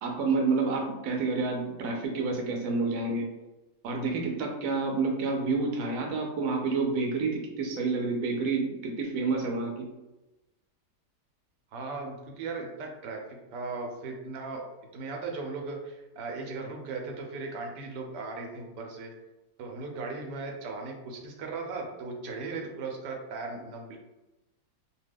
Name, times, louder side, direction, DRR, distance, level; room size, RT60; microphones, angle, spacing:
voice 1, 0.0-3.3 3.8-9.9, right 4 dB, 70° right, 1 dB, 1.0 m, -29 dB
voice 2, 11.7-13.2 13.5-14.6 14.9-19.1 19.6-24.0, right 3 dB, 90° right, 2 dB, 1.2 m, -37 dB
2.8 x 2.2 x 3.3 m, 1.0 s
omnidirectional pair, 1.8 m